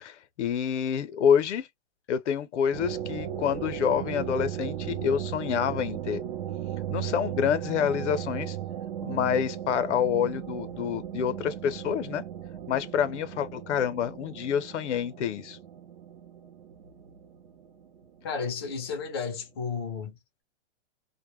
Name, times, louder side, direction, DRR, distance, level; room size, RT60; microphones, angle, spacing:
voice 1, 0.0-1.7 2.1-6.2 6.9-8.6 9.0-12.2 12.7-15.6, left 8 dB, 80° left, 0.6 m, -27 dB
sound 1, 2.7-19.0, right 10 dB, 55° right, 0.6 m, -37 dB
voice 2, 18.2-20.2, left 5 dB, 25° left, 0.4 m, -33 dB
2.1 x 2.0 x 3.0 m
hypercardioid pair, 170°, 35 cm